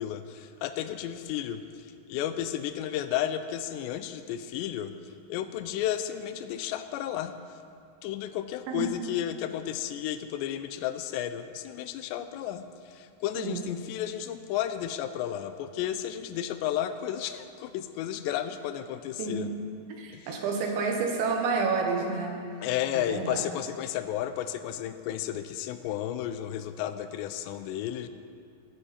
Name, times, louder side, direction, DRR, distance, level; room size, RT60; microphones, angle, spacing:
voice 1, 0.0-4.9 5.3-7.4 8.0-19.5 20.1-20.4 22.6-28.1, left 11 dB, 90° left, 10 dB, 2.8 m, -33 dB
voice 2, 13.4-13.7 19.2-19.4 20.0-22.4 22.9-23.4, right 4 dB, 85° right, 1 dB, 3.7 m, -29 dB
14.5 x 13.5 x 4.3 m, 2.4 s
omnidirectional pair, 5.0 m